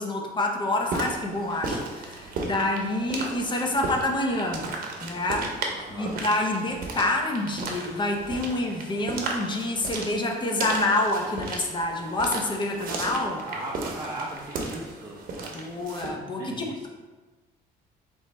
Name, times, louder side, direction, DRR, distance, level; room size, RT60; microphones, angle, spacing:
voice 1, 0.0-4.7 5.0-5.6 5.9-13.5 15.5-16.9, left 2 dB, 25° left, 2 dB, 0.7 m, -27 dB
sound 1, 0.8-16.1, right 3 dB, 55° right, 0.8 m, -35 dB
voice 2, 5.7-6.2 13.4-15.2 16.4-16.9, right 1 dB, 20° right, -5 dB, 0.6 m, -37 dB
3.4 x 3.1 x 4.1 m, 1.3 s
cardioid pair, 110°, 17 cm